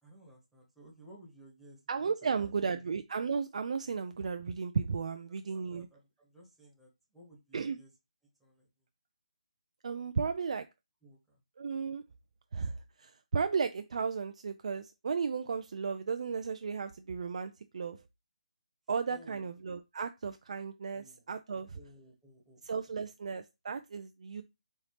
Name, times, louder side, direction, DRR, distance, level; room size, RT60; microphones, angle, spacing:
voice 1, 0.0-2.8 5.1-7.9 8.4-8.7 11.0-11.4 19.1-19.5 20.9-21.2 21.7-22.6, right 1 dB, ahead, 1.3 m, -57 dB
voice 2, 1.9-5.9 7.5-7.8 9.8-10.7 11.6-12.0 12.5-18.0 18.9-21.8 22.6-24.4, right 5 dB, 55° right, 0.3 m, -34 dB
4.3 x 2.8 x 3.2 m
hypercardioid pair, 160°, 4 cm